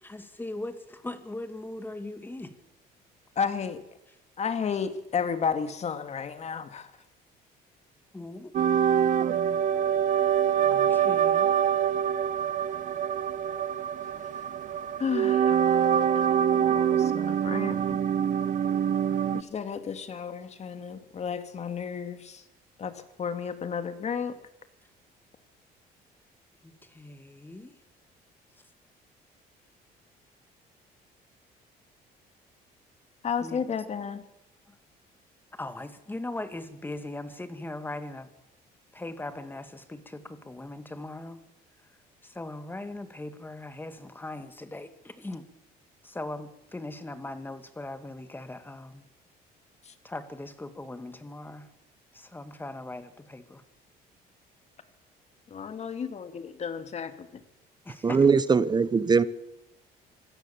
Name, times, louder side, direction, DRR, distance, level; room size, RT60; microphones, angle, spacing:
voice 1, 0.0-2.5 8.1-8.5 10.7-11.5 26.6-27.8 33.4-33.6 34.7-34.8 35.5-38.3 38.9-41.4 42.2-45.4 46.0-49.0 50.0-51.7 52.1-53.6 57.9-58.2, left 2 dB, 10° left, 2.2 m, -39 dB
voice 2, 3.4-3.8 4.4-6.9 10.7-11.1 15.0-15.6 16.3-18.0 19.3-22.4 22.8-24.4 33.2-34.2 49.9-50.0 55.5-57.3, left 6 dB, 40° left, 2.4 m, -33 dB
sound 1, 8.5-19.4, right 9 dB, 50° right, 1.0 m, -25 dB
voice 3, 58.0-59.3, right 5 dB, 25° right, 0.9 m, -21 dB
26.0 x 16.0 x 7.2 m
cardioid pair, 110°, 17 cm